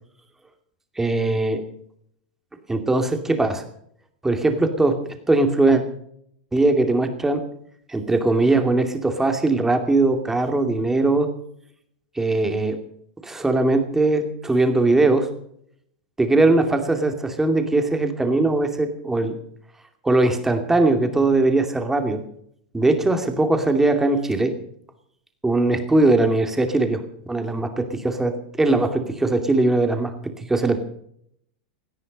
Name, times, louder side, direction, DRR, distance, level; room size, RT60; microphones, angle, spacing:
voice 1, 1.0-1.6 2.7-3.6 4.2-5.8 6.5-7.4 7.9-11.3 12.2-12.8 13.2-15.3 16.2-19.4 20.0-22.2 22.7-24.5 25.4-27.0 27.3-30.8, right 2 dB, 10° right, 6 dB, 2.5 m, -20 dB
18.0 x 13.5 x 5.4 m, 0.68 s
supercardioid pair, 140°, 5 cm